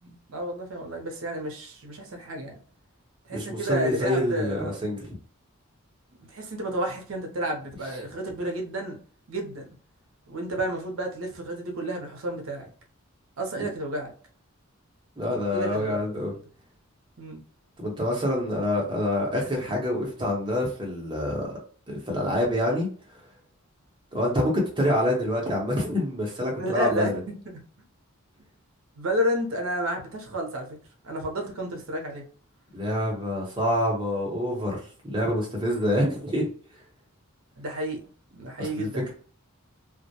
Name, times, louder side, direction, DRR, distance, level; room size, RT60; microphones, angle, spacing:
voice 1, 0.0-2.5 3.3-4.8 6.3-9.0 9.3-9.7 10.3-12.7 13.4-14.1 15.5-16.0 16.3-16.4 17.2-17.4 26.6-27.6 29.0-30.7 31.0-32.2 37.6-38.0 38.3-39.1, right 1 dB, 65° right, 1 dB, 0.6 m, -31 dB
voice 2, 3.3-5.0 13.6-13.7 15.2-16.3 17.8-21.5 21.9-22.9 24.1-27.1 32.7-34.8 35.0-36.5 38.6-39.1, left 1 dB, 20° right, -1 dB, 0.7 m, -26 dB
2.2 x 2.1 x 2.7 m, 0.43 s
head